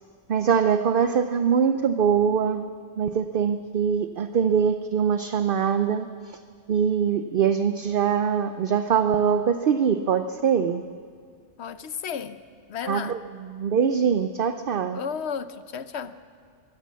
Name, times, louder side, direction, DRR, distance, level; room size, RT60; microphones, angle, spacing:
voice 1, 0.3-2.6 3.0-6.4 6.7-10.8 12.9-13.2 13.5-15.0, right 7 dB, 55° right, 10 dB, 0.7 m, -23 dB
voice 2, 11.6-12.4 12.7-13.2 14.9-16.2, left 7 dB, 70° left, 13 dB, 1.0 m, -33 dB
22.0 x 16.5 x 7.5 m, 2.2 s
omnidirectional pair, 1.2 m